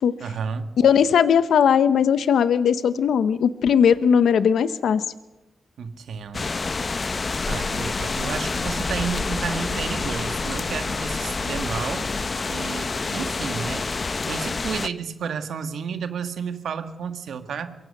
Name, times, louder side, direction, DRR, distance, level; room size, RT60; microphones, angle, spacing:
voice 1, 0.2-0.7 5.8-12.1 12.5-13.8 14.2-17.7, right 6 dB, 85° right, 9 dB, 1.7 m, -32 dB
voice 2, 0.8-5.0, left 7 dB, 90° left, 14 dB, 0.8 m, -18 dB
sound 1, 6.3-14.9, left 4 dB, 40° left, 0.7 m, -27 dB
23.5 x 22.5 x 6.7 m, 1.0 s
cardioid pair, 75°, 0 cm